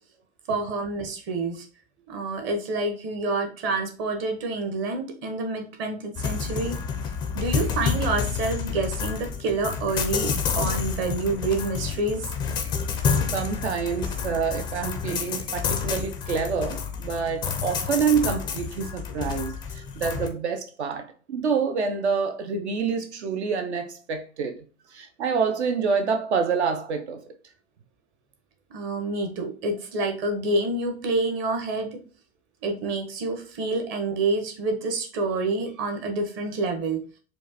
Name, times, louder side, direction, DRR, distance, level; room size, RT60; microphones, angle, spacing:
voice 1, 0.5-1.7 2.1-6.8 7.3-12.3 28.7-32.0 32.6-37.0, right 2 dB, 30° right, 0.9 m, -28 dB
sound 1, 6.2-20.3, left 6 dB, 15° left, 0.3 m, -29 dB
voice 2, 13.3-24.6 24.9-27.2, right 5 dB, 65° right, 0.6 m, -27 dB
4.5 x 2.3 x 2.8 m
figure-of-eight pair, 95°, 36 cm